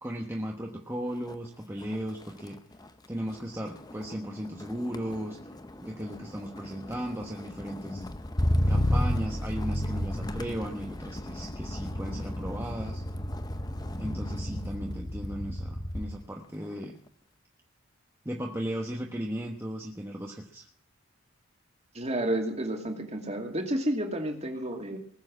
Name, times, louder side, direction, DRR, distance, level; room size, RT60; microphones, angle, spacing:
voice 1, 0.0-2.6 3.1-5.4 5.8-8.1 8.7-13.0 14.0-17.0 18.2-20.7, equal, 10° right, 0 dB, 1.1 m, -36 dB
Motor vehicle (road), 1.1-1.5 1.8-16.3 16.6-17.1, left 1 dB, 20° left, 0.7 m, -33 dB
voice 2, 21.9-25.0, right 1 dB, 30° right, 3 dB, 2.5 m, -31 dB
20.0 x 7.6 x 7.4 m, 0.62 s
head